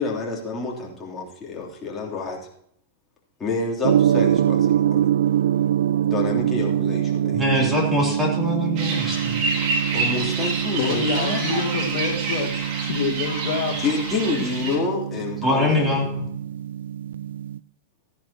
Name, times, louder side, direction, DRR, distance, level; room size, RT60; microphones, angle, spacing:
voice 1, 0.0-2.4 3.4-5.1 6.1-7.7 9.9-11.4 13.8-16.1, left 4 dB, 20° left, -3 dB, 3.1 m, -28 dB
Gong, 3.8-17.6, right 10 dB, 85° right, 0.3 m, -24 dB
voice 2, 7.3-9.4 15.4-16.3, left 2 dB, 10° right, -1 dB, 3.0 m, -23 dB
sound 1, 8.8-14.8, right 3 dB, 45° right, 3.7 m, -28 dB
voice 3, 10.8-13.9, left 5 dB, 60° left, 1 dB, 1.9 m, -27 dB
15.0 x 10.5 x 2.9 m, 0.70 s
supercardioid pair, 140°, 0 cm